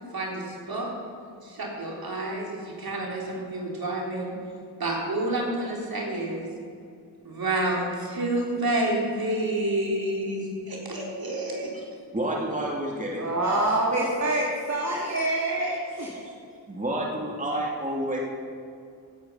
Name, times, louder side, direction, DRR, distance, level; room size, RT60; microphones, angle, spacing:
voice 1, 0.1-0.9 1.4-4.3 4.8-6.5 7.2-11.7, right 1 dB, 55° right, -2 dB, 3.9 m, -29 dB
voice 2, 12.1-13.3 14.9-15.0 16.3-16.4 16.7-18.2, right 1 dB, 15° right, -2 dB, 2.6 m, -29 dB
voice 3, 13.2-16.2, right 1 dB, 40° right, -3 dB, 2.8 m, -26 dB
16.5 x 8.9 x 5.6 m, 2.4 s
supercardioid pair, 45°, 43 cm